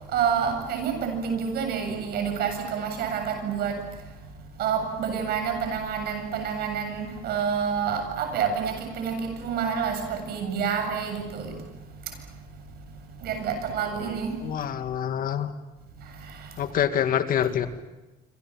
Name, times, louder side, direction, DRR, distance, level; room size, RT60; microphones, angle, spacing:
voice 1, 0.1-3.8 4.6-11.6 13.2-14.3 16.0-16.5, right 7 dB, 70° right, 6 dB, 7.6 m, -28 dB
voice 2, 14.4-15.5 16.6-17.7, left 9 dB, 60° left, 9 dB, 2.1 m, -26 dB
27.0 x 26.0 x 7.4 m, 1.1 s
cardioid pair, 110°, 17 cm